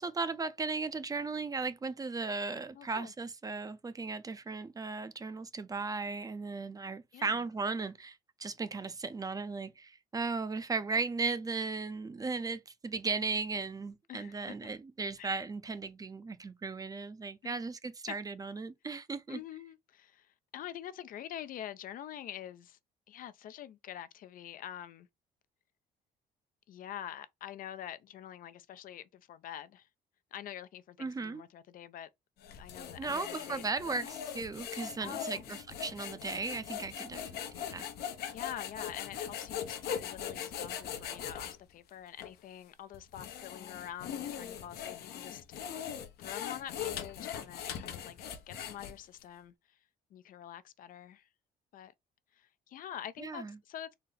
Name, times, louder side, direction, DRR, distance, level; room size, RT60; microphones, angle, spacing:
voice 1, 0.0-19.4 31.0-31.4 33.0-37.9 53.2-53.5, right 4 dB, 20° right, 0.5 m, -36 dB
voice 2, 2.7-3.1 7.1-7.4 14.1-14.6 15.2-15.3 17.4-17.6 18.1-18.2 19.3-22.8 23.1-25.1 26.7-29.9 30.3-32.1 32.6-33.9 35.0-35.5 38.3-49.8 50.1-51.3 51.7-51.9 52.3-53.9, left 10 dB, 60° left, 0.4 m, -46 dB
sound 1, 32.4-41.6 42.2-42.3 42.9-49.2, left 9 dB, 80° left, 0.8 m, -40 dB
4.1 x 2.0 x 3.8 m
cardioid pair, 95°, 16 cm